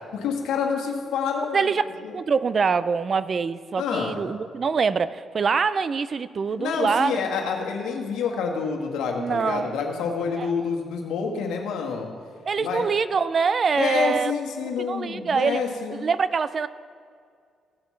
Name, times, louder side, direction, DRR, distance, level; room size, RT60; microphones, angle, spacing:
voice 1, 0.1-1.6 1.9-2.1 3.7-4.1 6.6-12.1 12.6-12.8 13.8-16.0, left 5 dB, 85° left, 1 dB, 1.4 m, -27 dB
voice 2, 1.5-1.9 2.1-7.1 9.2-9.8 10.4-10.5 12.5-14.3 14.6-15.6 15.9-16.7, right 5 dB, 45° right, 16 dB, 0.4 m, -24 dB
16.5 x 7.4 x 3.2 m, 2.1 s
cardioid pair, 90°, 0 cm